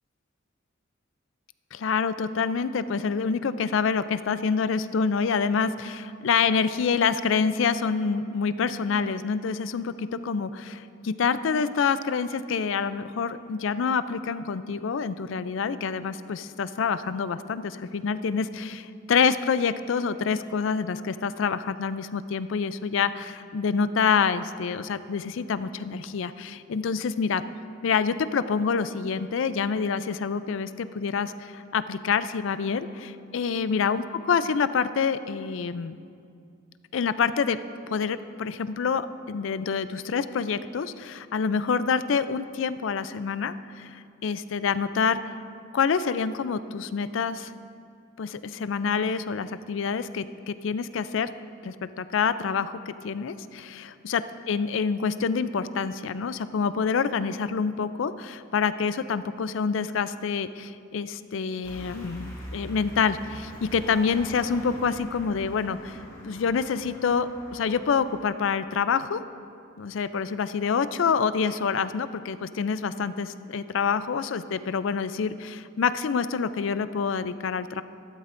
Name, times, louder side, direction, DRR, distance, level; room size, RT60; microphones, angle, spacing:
voice 1, 1.7-27.4 27.8-36.0 36.9-37.6 37.9-45.3 45.7-47.5 48.2-51.3 51.6-66.0 66.2-69.2 69.8-77.8, left 6 dB, 65° left, 13 dB, 0.4 m, -27 dB
sound 1, 61.6-68.2, equal, 15° left, 1.7 m, -43 dB
15.5 x 12.5 x 2.6 m, 2.4 s
head